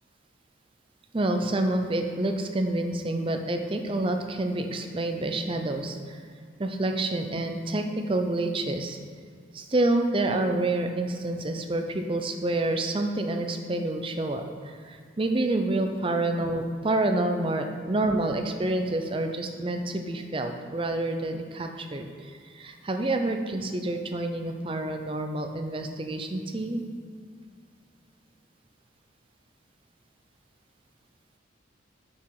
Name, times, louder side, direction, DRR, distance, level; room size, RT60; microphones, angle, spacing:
voice 1, 1.1-6.2 6.6-9.0 9.5-26.8, right 2 dB, 25° right, 5 dB, 0.5 m, -28 dB
6.9 x 4.8 x 4.7 m, 2.1 s
head